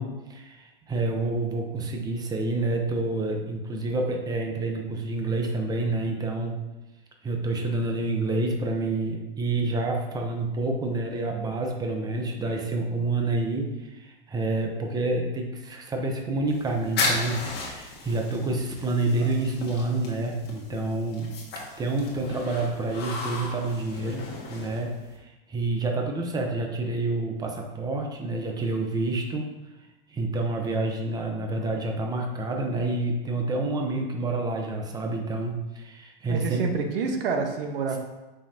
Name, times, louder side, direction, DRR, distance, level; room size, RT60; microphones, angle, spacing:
voice 1, 0.0-6.6 7.2-21.3 21.8-29.5 30.1-36.7, right 2 dB, 15° right, 2 dB, 0.9 m, -28 dB
sound 1, 16.5-25.2, left 3 dB, 35° left, 1.7 m, -35 dB
voice 2, 36.3-38.0, right 5 dB, 70° right, 4 dB, 1.2 m, -28 dB
7.3 x 5.7 x 2.9 m, 1.1 s
supercardioid pair, 135°, 29 cm